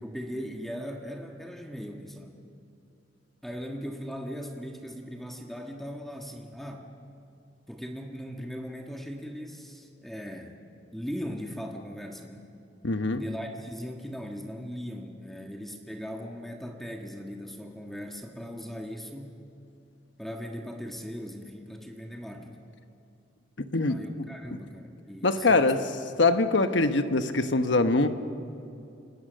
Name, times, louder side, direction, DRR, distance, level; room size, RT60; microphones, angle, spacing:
voice 1, 0.0-2.4 3.4-6.9 7.7-10.6 10.9-12.5 13.1-19.4 20.2-22.6 23.9-25.9, equal, ahead, 1 dB, 1.5 m, -39 dB
voice 2, 12.8-13.2 23.6-24.0 25.2-25.9 26.2-28.1, left 3 dB, 85° left, 8 dB, 1.2 m, -23 dB
30.0 x 18.5 x 6.4 m, 2.7 s
head